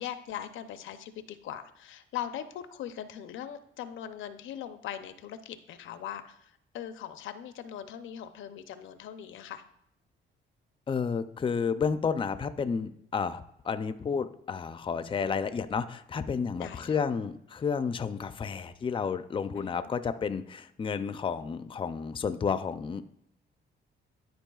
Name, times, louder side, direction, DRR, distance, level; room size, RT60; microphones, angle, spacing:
voice 1, 0.0-9.6 15.2-15.3 16.6-16.9 19.5-19.9, left 10 dB, 80° left, 10 dB, 0.6 m, -40 dB
voice 2, 10.9-23.0, left 6 dB, 25° left, 11 dB, 0.5 m, -31 dB
12.0 x 4.4 x 2.4 m, 0.74 s
cardioid pair, 90°, 20 cm